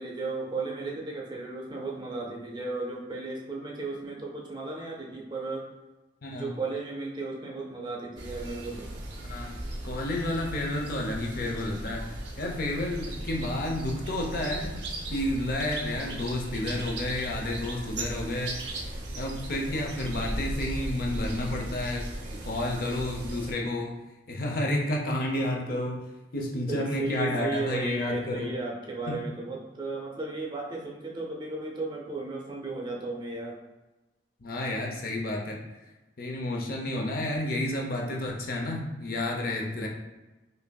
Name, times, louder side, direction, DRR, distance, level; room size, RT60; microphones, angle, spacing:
voice 1, 0.0-5.7 6.4-8.9 26.7-33.6, right 3 dB, 25° right, -2 dB, 0.6 m, -35 dB
voice 2, 6.2-6.5 9.3-12.0 12.4-14.8 15.1-18.9 19.1-23.9 24.3-26.0 26.3-28.5 29.1-29.2 34.4-35.6 36.2-39.9, left 1 dB, 55° left, 0 dB, 0.6 m, -31 dB
sound 1, 8.2-23.5, right 1 dB, 75° right, 0.7 m, -37 dB
5.2 x 2.6 x 2.2 m, 1.1 s
head